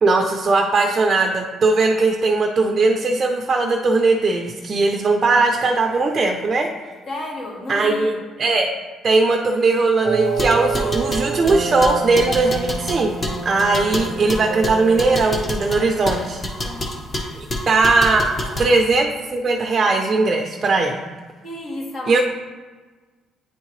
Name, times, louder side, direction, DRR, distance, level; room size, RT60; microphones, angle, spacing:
voice 1, 0.0-6.7 7.7-8.7 9.0-13.1 13.4-16.4 17.3-18.3 18.6-20.9 22.1-22.2, right 3 dB, 30° right, 2 dB, 0.5 m, -19 dB
voice 2, 7.1-8.2 16.6-16.8 18.4-18.7 21.4-22.2, left 2 dB, 65° left, -3 dB, 1.8 m, -32 dB
sound 1, 10.0-15.2, right 5 dB, 80° right, 0.6 m, -27 dB
sound 2, 10.3-18.7, left 1 dB, 25° left, 0.9 m, -28 dB
9.5 x 3.6 x 3.1 m, 1.3 s
cardioid pair, 135°, 0 cm